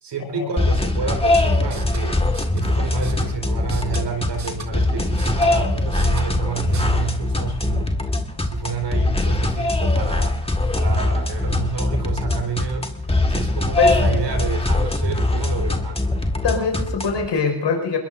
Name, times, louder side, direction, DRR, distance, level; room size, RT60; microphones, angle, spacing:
voice 1, 0.0-7.9 8.4-10.4 10.7-16.0, right 5 dB, 60° right, 3 dB, 4.2 m, -29 dB
sound 1, 0.6-17.3, left 2 dB, 10° left, 1.8 m, -22 dB
sound 2, 1.6-6.9, right 5 dB, 35° right, 2.0 m, -39 dB
voice 2, 16.4-18.0, left 5 dB, 60° left, 3 dB, 5.3 m, -22 dB
22.0 x 21.0 x 2.6 m, 0.91 s
cardioid pair, 75°, 48 cm